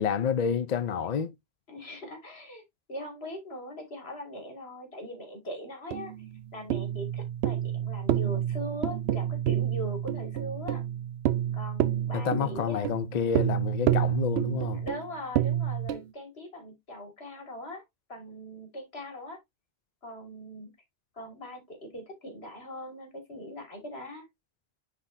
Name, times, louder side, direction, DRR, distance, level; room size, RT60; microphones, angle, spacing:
voice 1, 0.0-1.3 12.1-14.8, left 7 dB, 50° left, 0.6 m, -29 dB
voice 2, 1.7-2.6 2.9-6.1 6.5-10.8 11.5-12.9 14.7-17.8 18.1-19.4 20.0-20.7 21.2-24.3, equal, 80° left, 2.5 m, -41 dB
sound 1, 5.9-16.0, right 11 dB, 85° right, 0.8 m, -29 dB
9.6 x 4.0 x 2.6 m
omnidirectional pair, 1.0 m